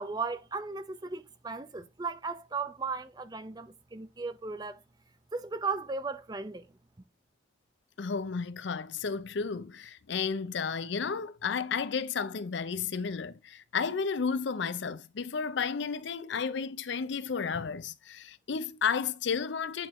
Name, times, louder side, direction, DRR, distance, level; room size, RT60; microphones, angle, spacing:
voice 1, 0.0-4.8 5.3-6.7, right 4 dB, 20° right, 0.5 m, -36 dB
voice 2, 8.0-19.9, left 5 dB, 60° left, 0.5 m, -32 dB
8.9 x 4.5 x 3.1 m
head